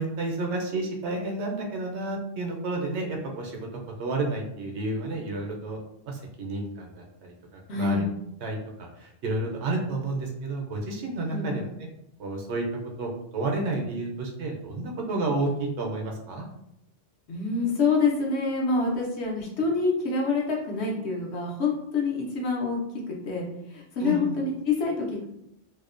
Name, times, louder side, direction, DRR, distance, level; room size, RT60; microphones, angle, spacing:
voice 1, 0.0-3.7 4.0-5.8 6.1-8.1 8.4-11.7 12.2-12.6 13.0-16.5 24.0-24.3, right 2 dB, 80° right, 1 dB, 0.9 m, -31 dB
voice 2, 7.7-8.0 11.3-11.6 17.3-22.8 23.1-25.2, left 4 dB, 75° left, -1 dB, 1.0 m, -26 dB
2.6 x 2.1 x 2.4 m, 0.80 s
omnidirectional pair, 1.1 m